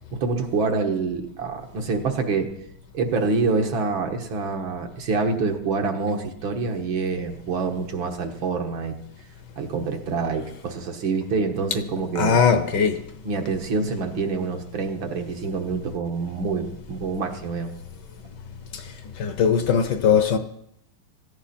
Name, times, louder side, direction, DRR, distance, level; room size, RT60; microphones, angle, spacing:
voice 1, 0.1-2.5 2.9-8.9 9.6-12.4 13.2-17.7, right 4 dB, 70° right, 2.2 m, -26 dB
voice 2, 12.2-13.0 19.2-20.4, left 6 dB, 60° left, 1.4 m, -19 dB
17.0 x 15.0 x 4.4 m
omnidirectional pair, 2.3 m